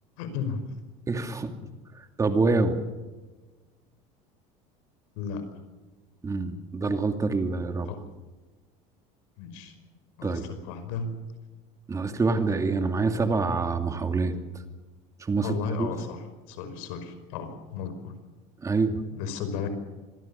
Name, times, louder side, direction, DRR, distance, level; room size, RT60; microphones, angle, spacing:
voice 1, 0.2-0.6 5.2-5.4 7.9-8.0 9.4-9.7 10.2-11.1 15.4-18.1 19.1-19.7, left 5 dB, 85° left, 9 dB, 5.3 m, -34 dB
voice 2, 1.1-1.5 2.2-2.8 6.2-7.9 10.2-10.4 11.9-14.6 15.2-15.9 18.6-19.0, right 3 dB, 20° right, 6 dB, 2.5 m, -26 dB
26.0 x 20.0 x 7.1 m, 1.2 s
cardioid pair, 130°, 17 cm